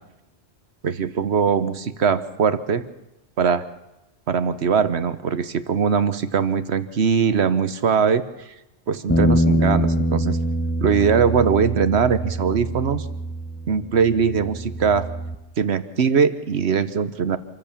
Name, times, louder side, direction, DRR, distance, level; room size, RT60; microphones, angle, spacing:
voice 1, 0.8-2.8 3.4-3.6 4.3-8.5 8.9-10.4 10.8-13.1 13.7-15.1 15.6-17.4, right 6 dB, 70° right, 13 dB, 1.3 m, -21 dB
sound 1, 9.1-15.3, equal, 10° left, 1.2 m, -24 dB
27.0 x 14.5 x 7.1 m, 0.99 s
omnidirectional pair, 1.2 m